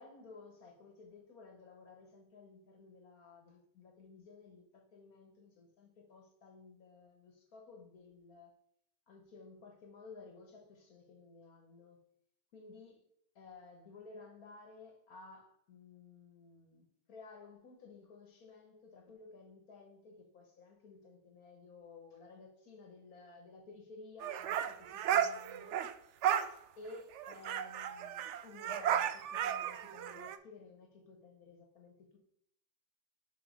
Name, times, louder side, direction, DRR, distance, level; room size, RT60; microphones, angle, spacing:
voice 1, 0.0-8.5 9.1-12.0 12.5-13.0 13.3-25.8 26.8-32.2, left 4 dB, 65° left, 1.5 m, -55 dB
sound 1, 24.2-25.9 26.2-26.5 26.9-27.0 27.2-30.4, right 9 dB, 75° right, 0.6 m, -34 dB
5.8 x 5.2 x 4.9 m
omnidirectional pair, 1.7 m